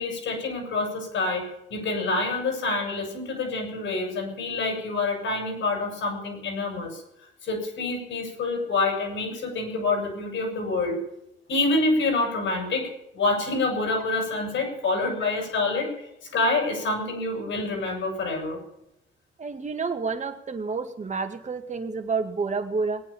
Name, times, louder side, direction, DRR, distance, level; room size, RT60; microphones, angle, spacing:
voice 1, 0.0-1.4 1.7-11.0 11.5-15.9 16.2-18.6, left 3 dB, 75° left, 3 dB, 7.0 m, -27 dB
voice 2, 19.4-23.0, right 4 dB, 35° right, 6 dB, 2.1 m, -29 dB
20.0 x 9.5 x 7.1 m, 0.82 s
cardioid pair, 90°, 20 cm